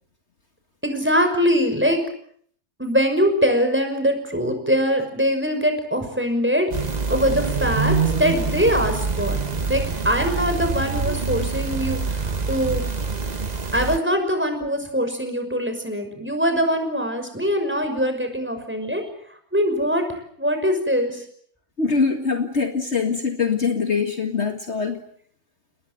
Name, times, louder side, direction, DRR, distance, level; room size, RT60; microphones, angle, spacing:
voice 1, 0.8-2.0 2.8-6.7 7.1-9.4 9.7-12.9 13.7-19.0 19.5-21.2, equal, 10° right, 6 dB, 6.0 m, -22 dB
sound 1, 6.7-14.0, right 4 dB, 30° right, 1.3 m, -25 dB
voice 2, 21.8-25.0, left 5 dB, 50° left, 5 dB, 2.2 m, -23 dB
29.5 x 21.0 x 7.7 m, 0.62 s
omnidirectional pair, 1.5 m